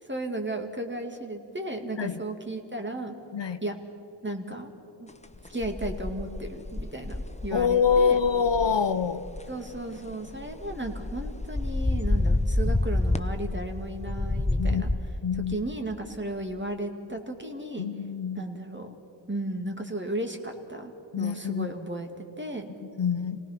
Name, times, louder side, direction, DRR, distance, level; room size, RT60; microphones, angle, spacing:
voice 1, 0.1-3.1 3.6-3.8 4.2-4.7 5.0-5.1 5.5-8.2 9.5-14.9 15.5-17.9 18.4-19.0 19.3-22.7, right 1 dB, 20° right, 2.3 m, -35 dB
sound 1, 5.3-8.7 9.2-9.4 9.7-13.7 14.0-15.0, left 2 dB, 15° left, 0.9 m, -28 dB
voice 2, 7.5-9.3 14.5-14.8 15.2-15.6 17.8-18.5 21.1-21.7 22.9-23.4, left 6 dB, 60° left, 0.8 m, -25 dB
27.0 x 18.5 x 5.9 m
cardioid pair, 50°, 50 cm